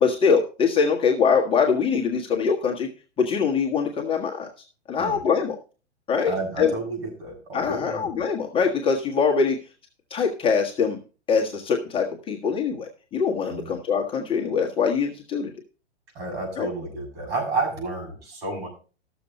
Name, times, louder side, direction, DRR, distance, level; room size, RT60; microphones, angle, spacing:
voice 1, 0.0-2.9 3.2-4.5 4.9-5.5 6.1-6.7 7.5-9.6 10.1-11.0 11.3-15.5 16.6-16.7, left 6 dB, 15° left, 0 dB, 1.4 m, -23 dB
voice 2, 6.3-8.1 13.5-13.7 16.2-18.7, right 3 dB, 60° right, 1 dB, 7.0 m, -31 dB
14.0 x 7.0 x 4.2 m, 0.35 s
hypercardioid pair, 135°, 34 cm